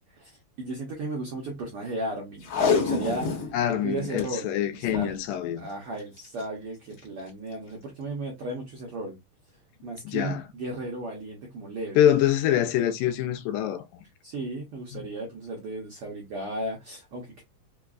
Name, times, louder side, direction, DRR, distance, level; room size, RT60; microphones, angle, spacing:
voice 1, 0.1-3.5 3.8-5.1 5.6-9.2 9.8-12.0 14.2-17.4, right 2 dB, 75° right, 1.3 m, -35 dB
Packing tape duct tape, 2.4-3.5 3.9-4.0 4.2-4.3 4.8-5.2 6.2-6.4 7.0-7.1, left 5 dB, 50° left, 1.8 m, -26 dB
voice 2, 3.5-5.7 10.1-10.4 12.0-13.8, left 10 dB, 85° left, 2.2 m, -25 dB
5.1 x 2.3 x 2.3 m
omnidirectional pair, 3.7 m